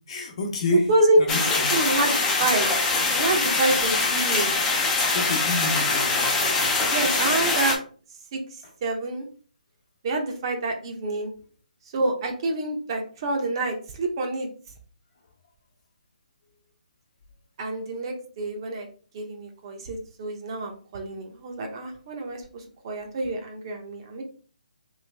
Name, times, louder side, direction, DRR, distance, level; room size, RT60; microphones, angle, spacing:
voice 1, 0.1-0.9 1.2-1.7 5.1-6.9, left 3 dB, 45° left, 2 dB, 1.0 m, -30 dB
sound 1, 1.3-7.7, left 3 dB, 10° left, 0.6 m, -23 dB
voice 2, 1.7-2.7 3.1-4.5 6.9-7.8 8.3-9.3 10.0-11.3 11.9-14.5 17.6-18.9 19.1-24.2, right 2 dB, 35° right, 3 dB, 0.8 m, -27 dB
3.3 x 3.2 x 3.3 m, 0.40 s
hypercardioid pair, 160°, 5 cm